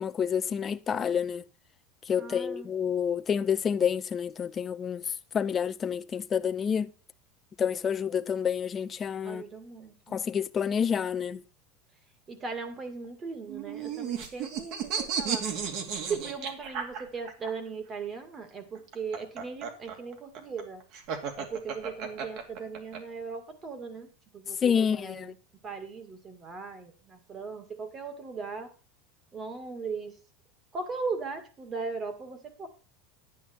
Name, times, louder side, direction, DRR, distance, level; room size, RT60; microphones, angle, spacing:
voice 1, 0.0-1.4 2.1-6.9 7.6-9.4 10.1-11.4 24.6-25.3, left 7 dB, 25° left, 0.6 m, -28 dB
voice 2, 2.2-2.7 9.2-10.2 12.3-15.5 16.1-20.8 21.4-25.4 25.6-28.7 29.3-30.1 30.7-32.7, right 4 dB, 25° right, 2.2 m, -38 dB
sound 1, 13.5-17.5 18.8-23.0, right 7 dB, 50° right, 2.4 m, -33 dB
11.0 x 9.5 x 4.5 m
supercardioid pair, 145°, 0 cm